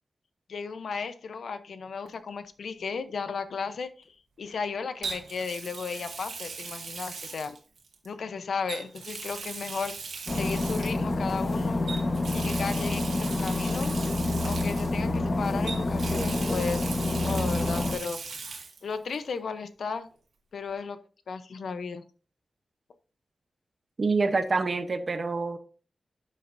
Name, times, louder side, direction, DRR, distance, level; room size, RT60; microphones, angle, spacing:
voice 1, 0.5-4.1 4.4-7.6 8.0-9.9 10.3-11.8 12.3-13.9 14.4-18.2 18.8-20.1 20.5-21.0 21.3-22.0, left 5 dB, 80° left, 0.8 m, -35 dB
Water tap faucet, 2.1-2.3 5.0-8.1 8.6-11.1 11.9-15.3 15.7-18.8 19.1-19.2 20.8-20.9, right 4 dB, 75° right, 1.9 m, -39 dB
sound 1, 10.3-18.0, left 2 dB, 35° left, 1.3 m, -28 dB
voice 2, 24.0-25.6, right 3 dB, 40° right, 0.9 m, -26 dB
12.0 x 7.5 x 2.7 m
wide cardioid pair, 170°, 0 cm